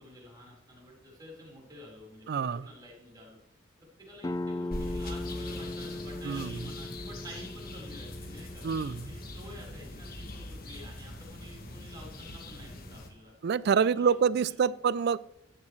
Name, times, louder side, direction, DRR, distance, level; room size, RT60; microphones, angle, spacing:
voice 1, 0.0-3.4 3.8-8.6 9.0-13.3 13.7-14.1 14.6-14.7, equal, 20° right, -4 dB, 4.4 m, -49 dB
voice 2, 2.3-2.7 6.2-6.6 8.6-9.1 13.4-15.2, right 6 dB, 50° right, 20 dB, 0.3 m, -26 dB
sound 1, 4.2-9.6, left 2 dB, 15° left, 0.4 m, -39 dB
sound 2, 4.7-13.1, left 1 dB, 45° left, 1.5 m, -42 dB
14.0 x 9.6 x 3.2 m, 0.73 s
head